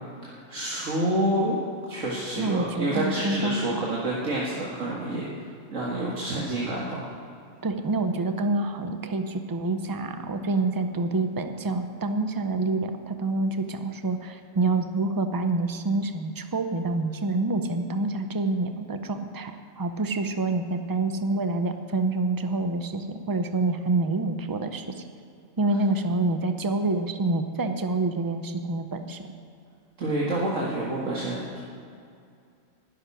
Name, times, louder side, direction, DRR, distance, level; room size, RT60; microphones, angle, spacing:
voice 1, 0.2-1.6 1.9-7.1 30.0-31.6, right 1 dB, 75° right, -5 dB, 2.2 m, -28 dB
voice 2, 2.4-3.8 5.3-5.4 7.6-25.0 25.6-29.3, right 2 dB, 20° right, 7 dB, 0.6 m, -27 dB
12.0 x 7.8 x 10.0 m, 2.4 s
omnidirectional pair, 1.3 m